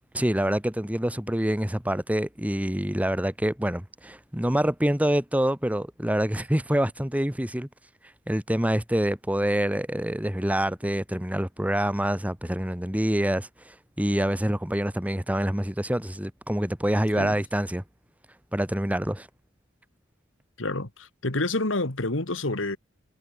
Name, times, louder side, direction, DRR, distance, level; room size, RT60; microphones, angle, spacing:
voice 1, 0.1-7.7 8.3-17.8 18.5-19.3, equal, 5° right, 1.5 m, -26 dB
voice 2, 20.6-22.8, left 2 dB, 70° left, 2.4 m, -28 dB
head